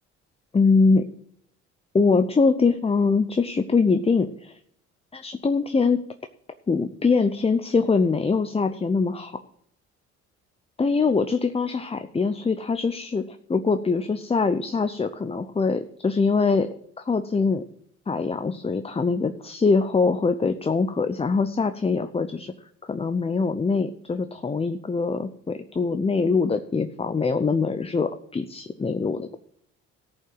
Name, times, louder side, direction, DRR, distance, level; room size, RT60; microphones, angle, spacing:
voice 1, 0.5-1.0 1.9-4.6 5.1-6.0 6.7-9.4 10.8-13.2 13.5-16.7 17.1-17.6 18.1-22.5 22.9-29.3, left 4 dB, 20° left, 9 dB, 0.7 m, -23 dB
14.0 x 5.6 x 7.7 m, 0.71 s
supercardioid pair, 75°, 29 cm